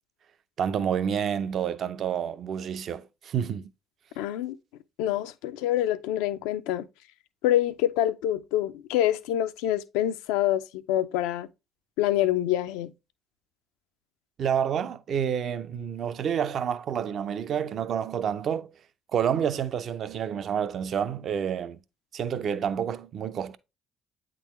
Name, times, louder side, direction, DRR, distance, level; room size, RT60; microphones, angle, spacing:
voice 1, 0.6-3.7 14.4-18.7 19.1-21.8 22.1-23.6, right 8 dB, 55° right, 0.5 m, -29 dB
voice 2, 4.2-4.6 5.0-6.9 7.4-11.5 12.0-12.9, left 12 dB, 80° left, 0.4 m, -26 dB
8.4 x 3.8 x 3.0 m
hypercardioid pair, 55°, 0 cm